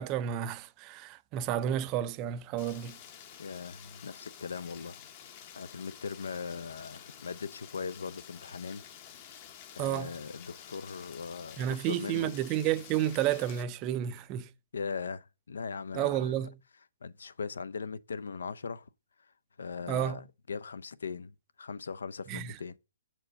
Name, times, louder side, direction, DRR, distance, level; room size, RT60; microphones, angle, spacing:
voice 1, 0.0-3.0 9.8-10.1 11.6-14.5 15.9-16.5 19.9-20.2 22.3-22.6, right 11 dB, 20° right, 0.4 m, -31 dB
Rain, 2.6-13.6, left 9 dB, 30° left, 0.7 m, -50 dB
voice 2, 3.4-5.0 5.5-8.8 9.8-12.3 14.7-16.4 17.0-18.9 19.6-22.8, left 5 dB, 90° left, 0.5 m, -39 dB
6.9 x 4.5 x 5.2 m
hypercardioid pair, 165°, 0 cm